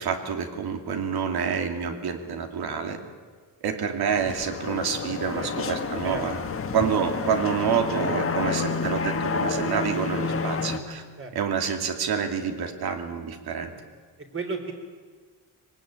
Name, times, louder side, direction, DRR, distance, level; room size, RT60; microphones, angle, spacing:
voice 1, 0.0-3.0 3.6-6.4 6.7-11.0 11.3-13.7, right 7 dB, 65° right, 5 dB, 2.8 m, -28 dB
sound 1, 4.1-10.8, left 5 dB, 30° left, 1.5 m, -29 dB
voice 2, 14.3-14.7, right 4 dB, 30° right, 4 dB, 3.8 m, -32 dB
24.0 x 19.0 x 9.0 m, 1.5 s
cardioid pair, 150°, 41 cm